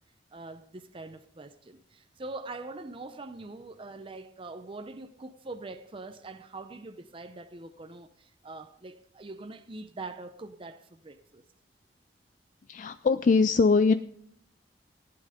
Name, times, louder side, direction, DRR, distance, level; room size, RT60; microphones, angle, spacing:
voice 1, 0.3-11.4, right 2 dB, 30° right, 0.6 m, -43 dB
voice 2, 12.7-13.9, left 4 dB, 45° left, 0.4 m, -22 dB
15.0 x 9.8 x 5.0 m
head